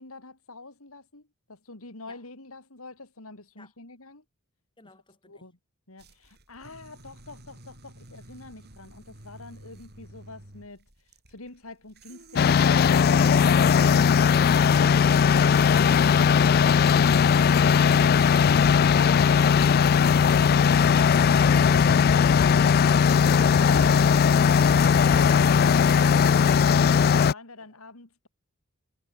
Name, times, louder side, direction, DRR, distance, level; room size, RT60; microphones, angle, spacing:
voice 1, 0.0-4.2 5.2-5.5 5.9-10.9 11.3-14.8 23.6-24.2 25.0-26.0 26.5-28.3, left 3 dB, 70° left, 3.7 m, -44 dB
voice 2, 4.8-5.4 27.6-27.7, left 2 dB, 25° left, 5.1 m, -54 dB
sound 1, 6.0-22.4, right 1 dB, 50° right, 6.9 m, -50 dB
sound 2, 12.4-27.3, left 6 dB, 45° left, 0.3 m, -19 dB
head